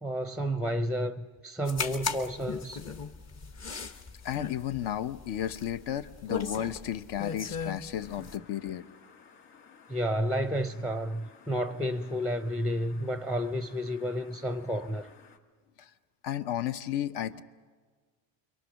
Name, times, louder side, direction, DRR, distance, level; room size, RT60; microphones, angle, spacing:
voice 1, 0.0-2.8 9.9-15.1, equal, ahead, 0.6 m, -31 dB
sound 1, 1.7-8.4, left 5 dB, 35° left, 1.2 m, -38 dB
voice 2, 4.2-8.9 15.8-15.9 16.2-17.4, left 11 dB, 60° left, 1.1 m, -33 dB
sound 2, 8.0-15.4, left 6 dB, 75° left, 1.9 m, -56 dB
29.0 x 23.0 x 6.5 m
supercardioid pair, 95°, 47 cm